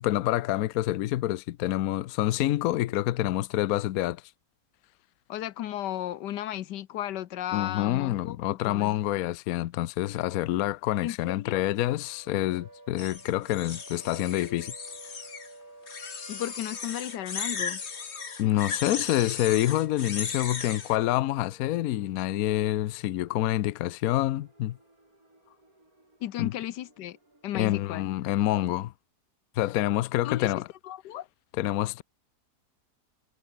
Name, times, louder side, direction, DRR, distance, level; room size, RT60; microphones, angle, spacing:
voice 1, 0.0-4.2 7.5-14.7 18.4-24.8 26.4-26.5 27.5-28.9 29.6-30.7 31.5-32.0, left 14 dB, 70° left, 1.0 m, -27 dB
voice 2, 5.3-9.0 11.0-11.6 16.3-17.8 26.2-27.2 27.4-28.1 30.2-30.5 30.8-31.3, left 12 dB, 90° left, 1.4 m, -34 dB
sound 1, 11.8-27.8, right 2 dB, 55° right, 8.0 m, -54 dB
sound 2, 13.0-15.5 15.9-21.0, left 5 dB, 40° left, 1.7 m, -36 dB
omnidirectional pair, 1.8 m